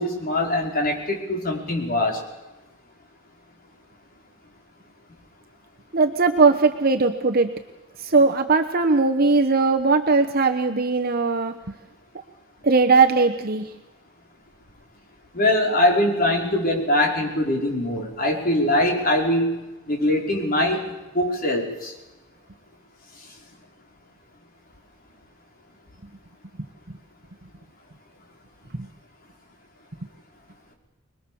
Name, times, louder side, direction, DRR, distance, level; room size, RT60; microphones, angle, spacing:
voice 1, 0.0-2.2 15.3-21.9, left 1 dB, 45° left, 0 dB, 5.2 m, -22 dB
voice 2, 5.9-7.5 8.0-11.5 12.6-13.7, right 4 dB, 50° right, 5 dB, 1.1 m, -19 dB
26.5 x 21.0 x 7.1 m, 1.1 s
head